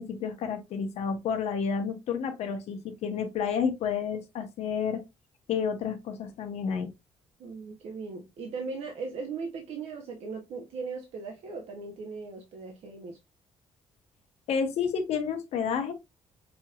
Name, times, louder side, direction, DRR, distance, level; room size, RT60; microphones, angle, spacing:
voice 1, 0.0-5.0 5.5-6.9 14.5-15.9, left 6 dB, 75° left, 1.0 m, -30 dB
voice 2, 7.4-13.2, right 4 dB, 75° right, 0.9 m, -38 dB
5.3 x 2.9 x 2.4 m
cardioid pair, 130°, 11 cm